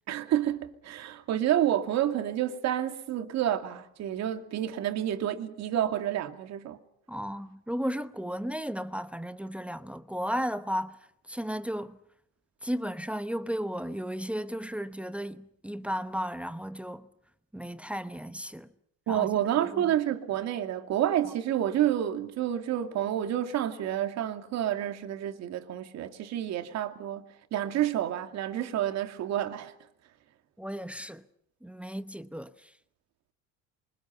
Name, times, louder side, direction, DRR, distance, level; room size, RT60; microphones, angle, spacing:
voice 1, 0.1-6.8 19.1-29.7, right 11 dB, 50° right, 2.6 m, -29 dB
voice 2, 7.1-11.0 11.3-12.0 12.6-17.1 17.5-18.7 19.1-19.4 19.7-19.9 30.6-31.2 31.6-32.7, equal, 5° right, 0.9 m, -34 dB
28.5 x 24.5 x 5.8 m
cardioid pair, 130°, 33 cm